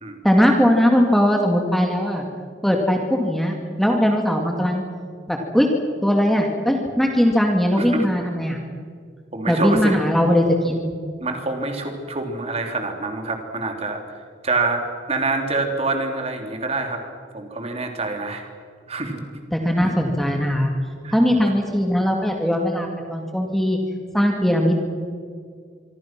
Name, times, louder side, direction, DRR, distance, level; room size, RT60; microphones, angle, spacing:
voice 1, 0.2-2.2 2.6-4.8 5.3-5.7 6.0-8.6 9.5-10.9 19.5-20.7 21.1-23.8 24.1-24.8, equal, ahead, 2 dB, 2.3 m, -19 dB
voice 2, 9.3-10.0 11.2-14.0 14.4-14.8 15.1-17.0 17.3-18.5 18.9-19.2 19.6-19.7 21.0-21.1, right 3 dB, 35° right, 4 dB, 3.3 m, -26 dB
26.0 x 24.5 x 6.1 m, 2.1 s
head